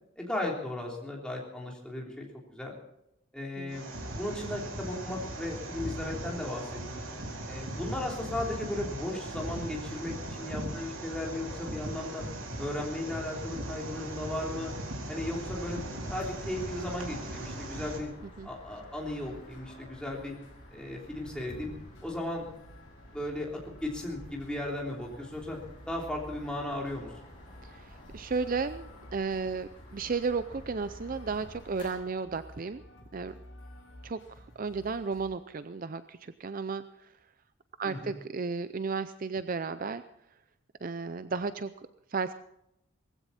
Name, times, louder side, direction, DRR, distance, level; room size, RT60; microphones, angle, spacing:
voice 1, 0.2-2.7 3.3-3.9 4.2-7.0 7.5-12.2 12.6-14.7 15.1-15.8 16.1-18.1 18.4-20.4 20.7-21.7 22.0-22.5 23.1-25.6 25.9-27.1 37.8-38.1, left 1 dB, 5° left, -2 dB, 3.3 m, -36 dB
sound 1, 3.7-18.0, right 1 dB, 70° right, 3.4 m, -39 dB
sound 2, 15.2-31.9, left 1 dB, 25° left, 7.7 m, -51 dB
sound 3, 18.9-35.3, equal, 60° left, 5.4 m, -52 dB
voice 2, 27.6-32.8 33.1-33.4 34.0-34.2 34.6-37.1 37.8-40.0 40.8-41.7 42.1-42.3, right 4 dB, 40° right, 12 dB, 0.5 m, -34 dB
19.0 x 15.5 x 4.2 m, 0.82 s
head